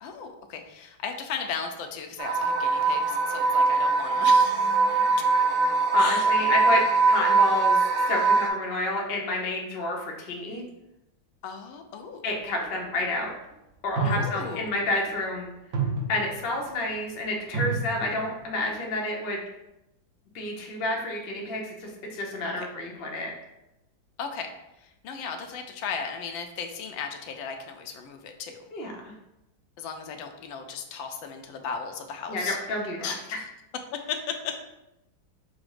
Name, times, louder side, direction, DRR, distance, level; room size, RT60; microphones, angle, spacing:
voice 1, 0.0-5.1 6.0-6.3 11.4-12.2 14.0-14.7 22.5-22.7 24.2-24.5 25.0-28.6 29.8-32.6 33.0-33.4 33.9-34.6, left 6 dB, 80° left, 5 dB, 1.3 m, -36 dB
sound 1, 2.2-8.5, right 4 dB, 85° right, 1.4 m, -22 dB
voice 2, 4.2-5.0 5.9-6.8 7.1-7.8 8.1-10.6 12.2-13.3 13.8-15.5 16.1-19.4 20.3-23.3 28.7-29.1 32.3-33.1, left 2 dB, 55° left, 0 dB, 0.6 m, -30 dB
sound 2, 12.6-12.7 14.0-14.7 15.1-15.3 15.7-16.6 17.5-18.3 18.7-18.9, right 4 dB, 65° right, 0.8 m, -30 dB
5.0 x 2.1 x 4.7 m, 0.91 s
omnidirectional pair, 2.1 m